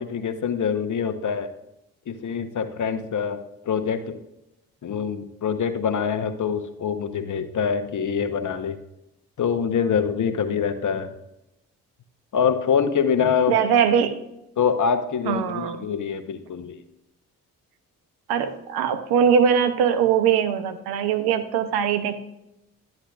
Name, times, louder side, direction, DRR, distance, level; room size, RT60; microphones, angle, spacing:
voice 1, 0.0-1.5 2.1-3.4 3.7-4.2 4.8-8.8 9.4-11.1 12.3-13.6 14.6-16.8, left 7 dB, 55° left, 9 dB, 1.0 m, -24 dB
voice 2, 13.5-14.2 15.3-15.9 18.3-22.2, right 7 dB, 85° right, 11 dB, 0.7 m, -21 dB
11.5 x 7.8 x 2.4 m, 0.89 s
supercardioid pair, 45°, 37 cm